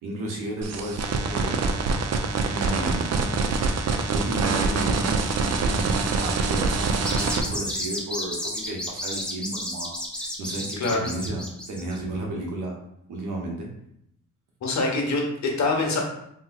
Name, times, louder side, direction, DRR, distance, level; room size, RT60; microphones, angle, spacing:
voice 1, 0.0-1.5 2.5-3.3 4.1-12.8 13.1-13.7, right 2 dB, 80° right, -1 dB, 0.9 m, -33 dB
sound 1, 0.6-7.4, right 4 dB, 55° right, 0.5 m, -25 dB
sound 2, 7.0-12.0, left 1 dB, 5° left, 0.8 m, -32 dB
voice 2, 10.8-11.1 14.6-16.0, left 3 dB, 65° left, 0 dB, 1.0 m, -24 dB
3.5 x 3.0 x 2.3 m, 0.76 s
cardioid pair, 75°, 31 cm